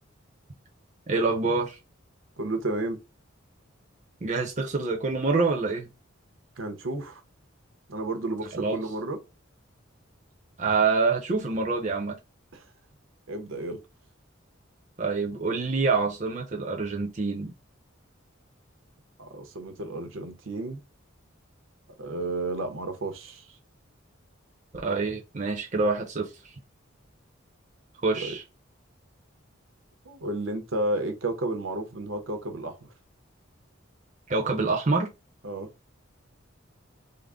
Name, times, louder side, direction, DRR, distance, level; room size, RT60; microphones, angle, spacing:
voice 1, 1.1-1.8 4.2-5.9 8.5-8.8 10.6-12.1 15.0-17.5 24.8-26.3 28.0-28.4 34.3-35.1, right 3 dB, 35° right, 0.6 m, -26 dB
voice 2, 2.4-3.0 6.6-7.2 7.9-9.2 12.5-12.6 13.3-13.8 19.2-20.8 22.0-23.5 28.2-28.4 30.0-32.9 35.4-35.7, right 2 dB, 75° right, 0.8 m, -32 dB
3.7 x 2.1 x 3.5 m
head